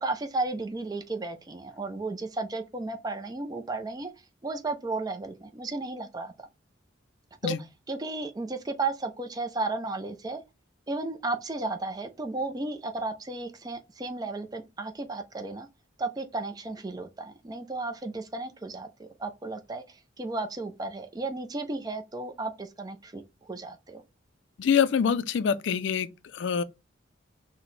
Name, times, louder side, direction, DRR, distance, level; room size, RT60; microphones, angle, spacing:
voice 1, 0.0-4.1 4.4-6.5 7.4-7.6 7.9-10.4 10.9-15.7 16.0-24.0, right 3 dB, 20° right, 0.4 m, -34 dB
voice 2, 24.6-26.6, left 7 dB, 70° left, 0.4 m, -25 dB
4.4 x 2.1 x 3.9 m
head